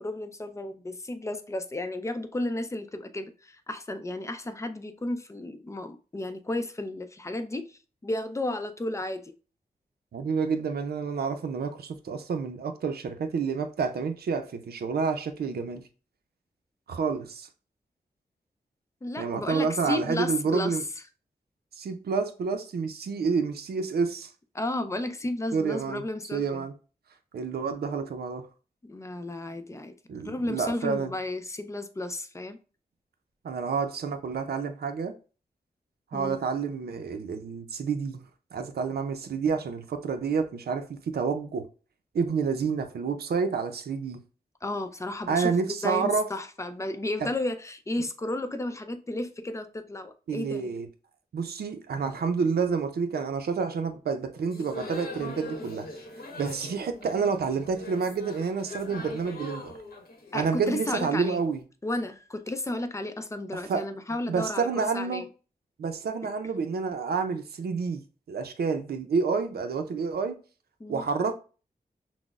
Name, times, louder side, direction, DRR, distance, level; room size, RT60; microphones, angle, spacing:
voice 1, 0.0-9.3 19.0-20.8 24.5-26.6 28.8-32.6 36.1-36.4 44.6-50.7 60.3-61.4 61.8-65.3 70.8-71.0, left 1 dB, 20° left, 0.5 m, -33 dB
voice 2, 10.1-15.8 16.9-17.5 19.2-20.8 21.8-24.3 25.5-26.0 26.3-26.7 27.3-28.5 30.1-31.1 33.4-35.1 36.1-41.7 42.1-44.2 45.3-46.3 47.2-47.3 50.3-50.9 51.3-55.9 56.4-59.7 60.3-61.6 63.5-63.9 64.3-65.2 65.8-70.4 70.9-71.3, right 5 dB, 90° right, 0.5 m, -29 dB
sound 1, 54.5-61.4, left 2 dB, 75° left, 1.0 m, -42 dB
5.9 x 2.0 x 2.4 m
wide cardioid pair, 90°, 16 cm